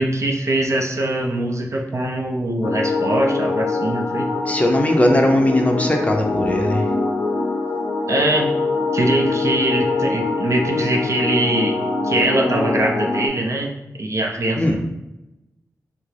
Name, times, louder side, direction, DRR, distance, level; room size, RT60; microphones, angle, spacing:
voice 1, 0.0-4.3 8.1-8.5 8.9-11.8 12.0-14.8, right 1 dB, 55° right, 1 dB, 0.5 m, -22 dB
sound 1, 2.6-13.3, left 3 dB, 90° left, 0.4 m, -23 dB
voice 2, 4.5-6.9 14.5-14.8, left 1 dB, 20° left, 3 dB, 0.5 m, -18 dB
3.1 x 2.5 x 3.2 m, 0.93 s
cardioid pair, 45°, 6 cm